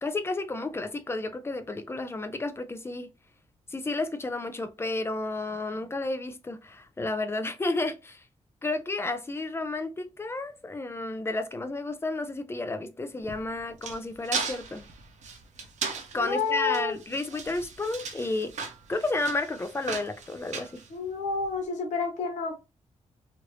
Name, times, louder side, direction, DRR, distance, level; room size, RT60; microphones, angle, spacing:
voice 1, 0.0-3.1 3.7-8.2 8.6-14.8 16.1-18.6 18.9-20.8, left 2 dB, 20° left, 0.4 m, -32 dB
sound 1, 13.2-21.5, right 5 dB, 75° right, 0.7 m, -37 dB
voice 2, 16.1-17.0 20.9-22.5, left 4 dB, 90° left, 1.1 m, -29 dB
3.1 x 2.5 x 3.0 m
cardioid pair, 105°, 12 cm